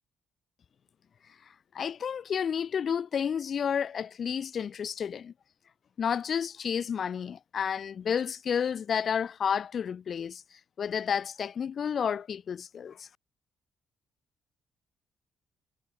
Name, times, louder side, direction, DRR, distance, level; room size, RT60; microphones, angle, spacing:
voice 1, 1.7-5.3 6.0-10.4 10.8-13.1, left 7 dB, 55° left, 3.7 m, -31 dB
cardioid pair, 90°, 0 cm